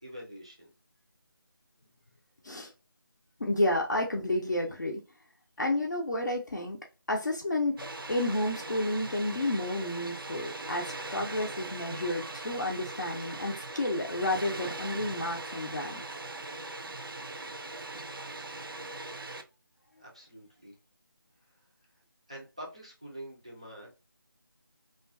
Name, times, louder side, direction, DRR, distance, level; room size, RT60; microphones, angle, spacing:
voice 1, 0.0-0.7 20.0-20.8 21.4-21.6 22.3-23.9, right 1 dB, 15° right, 0.4 m, -46 dB
voice 2, 3.4-5.0 5.6-6.8 7.1-16.0, left 1 dB, 50° left, 0.5 m, -31 dB
Water, 7.8-19.4, right 2 dB, 70° right, 0.5 m, -40 dB
2.4 x 2.3 x 2.3 m
figure-of-eight pair, 170°, 12 cm